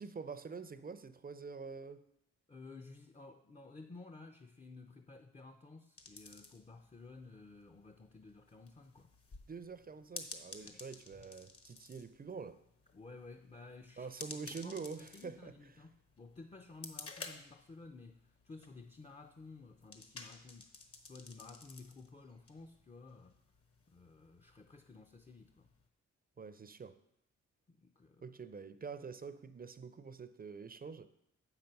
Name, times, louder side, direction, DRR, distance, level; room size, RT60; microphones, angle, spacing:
voice 1, 0.0-2.1 9.5-12.6 14.0-15.5 26.4-27.0 28.2-31.1, right 5 dB, 30° right, 0.5 m, -46 dB
voice 2, 2.5-9.1 10.5-10.8 12.9-20.7 21.0-23.4 23.9-25.7 27.7-28.3, left 3 dB, 20° left, 0.5 m, -54 dB
sound 1, 6.0-25.9, left 3 dB, 50° left, 1.2 m, -54 dB
7.3 x 5.9 x 5.3 m
cardioid pair, 65°, 30 cm